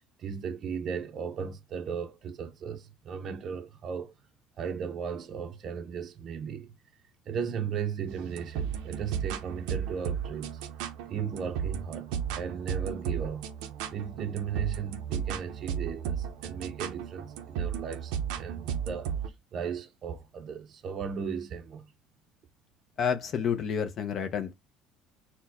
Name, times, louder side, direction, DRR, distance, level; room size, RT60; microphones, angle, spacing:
voice 1, 0.0-4.1 4.6-6.7 7.3-10.6 11.1-12.1 12.3-13.5 13.9-21.9, right 7 dB, 40° right, 0.5 m, -36 dB
sound 1, 8.1-19.3, right 8 dB, 85° right, 0.6 m, -35 dB
voice 2, 23.0-24.5, left 7 dB, 40° left, 0.5 m, -29 dB
4.3 x 2.1 x 4.1 m
cardioid pair, 135°, 0 cm